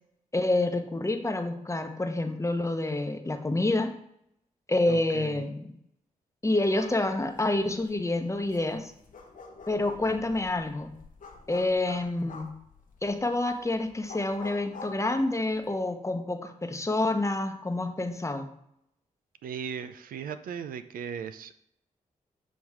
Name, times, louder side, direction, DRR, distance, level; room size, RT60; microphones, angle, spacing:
voice 1, 0.3-3.9 4.7-5.7 6.4-8.9 9.7-10.9 11.5-12.5 13.0-18.5, left 2 dB, 20° left, 6 dB, 0.8 m, -28 dB
voice 2, 4.9-5.5 19.4-21.6, right 7 dB, 90° right, 11 dB, 0.4 m, -37 dB
sound 1, 6.6-15.8, left 4 dB, 70° left, 1.0 m, -49 dB
7.2 x 3.1 x 4.8 m, 0.75 s
cardioid pair, 55°, 14 cm